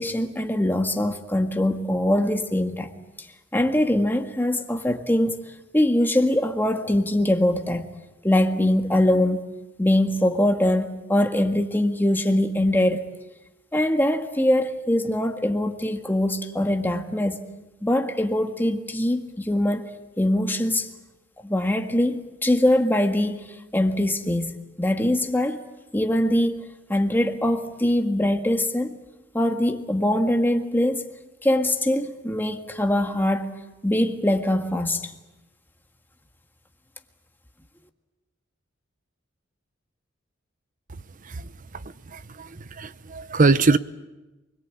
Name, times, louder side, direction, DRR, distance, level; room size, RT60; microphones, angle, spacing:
voice 1, 0.0-2.9 3.5-5.4 5.7-7.9 8.2-9.5 9.8-13.1 13.7-17.5 17.8-19.9 20.2-20.9 21.4-23.4 23.7-25.6 25.9-29.0 29.3-31.0 31.4-33.5 33.8-35.0, left 1 dB, 10° left, 1.7 m, -22 dB
voice 2, 42.1-43.8, right 3 dB, 45° right, 0.8 m, -22 dB
28.0 x 22.0 x 8.7 m
head